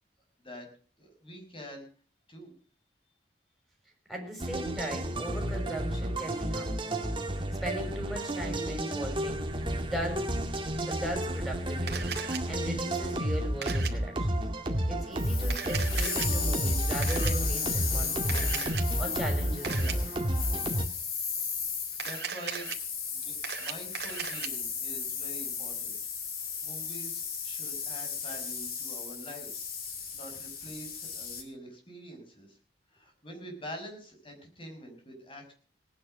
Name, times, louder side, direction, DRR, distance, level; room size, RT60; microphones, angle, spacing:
voice 1, 1.0-1.9 2.3-2.5 22.0-22.7 23.1-26.0 26.6-29.7 30.1-32.6 32.9-35.5, equal, 30° left, 3 dB, 5.8 m, -45 dB
voice 2, 4.1-7.0 7.6-10.3 10.9-12.1 12.4-14.4 14.9-20.2, right 1 dB, ahead, 0 dB, 6.4 m, -38 dB
sound 1, 4.4-20.9, right 1 dB, 30° right, 1.9 m, -31 dB
Camera, 11.9-12.4 13.6-13.9 15.4-16.3 17.0-17.3 18.3-18.8 19.6-19.9 21.9-22.8 23.2-24.5, right 7 dB, 65° right, 2.4 m, -36 dB
sound 2, 15.2-31.4, left 6 dB, 55° left, 3.5 m, -36 dB
18.5 x 10.0 x 6.6 m, 0.41 s
head